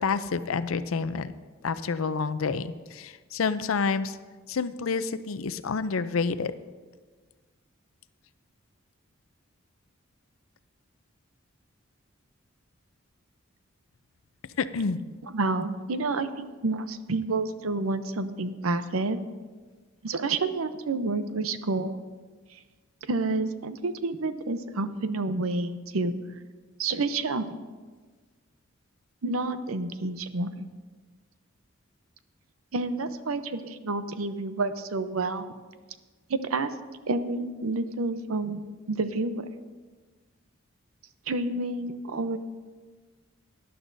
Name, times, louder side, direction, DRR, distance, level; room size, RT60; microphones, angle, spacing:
voice 1, 0.0-1.3 1.6-4.2 4.5-6.5 14.6-15.0, left 5 dB, 70° left, 13 dB, 0.5 m, -28 dB
voice 2, 15.3-19.2 20.0-22.0 22.5-22.6 23.1-26.1 26.8-27.6 29.2-30.5 32.7-35.5 36.3-36.7 37.1-38.6 38.9-39.4 41.3-42.4, right 3 dB, 80° right, 11 dB, 0.7 m, -29 dB
18.0 x 11.0 x 2.7 m, 1.4 s
head